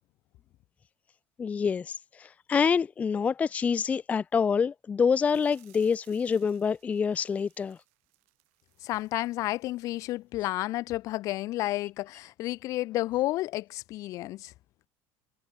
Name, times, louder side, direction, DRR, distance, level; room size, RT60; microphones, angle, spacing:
voice 1, 1.4-7.8, left 6 dB, 20° left, 0.4 m, -26 dB
sound 1, 5.1-10.1 10.4-10.6 11.0-11.1, right 27 dB, 85° right, 7.8 m, -65 dB
voice 2, 8.8-14.5, left 17 dB, 55° left, 0.9 m, -31 dB
cardioid pair, 135°, 7 cm